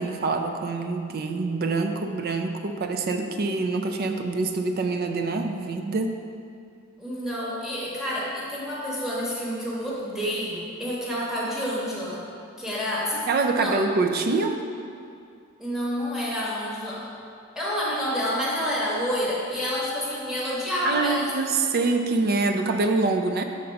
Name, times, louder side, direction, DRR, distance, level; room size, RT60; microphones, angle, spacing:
voice 1, 0.0-6.2 13.3-14.6 20.8-23.4, right 3 dB, 45° right, 5 dB, 0.4 m, -25 dB
voice 2, 7.0-12.3 12.6-13.3 13.5-13.7 15.6-17.1 17.6-21.3 21.7-21.8, equal, ahead, -7 dB, 1.1 m, -28 dB
5.2 x 3.9 x 5.7 m, 2.4 s
head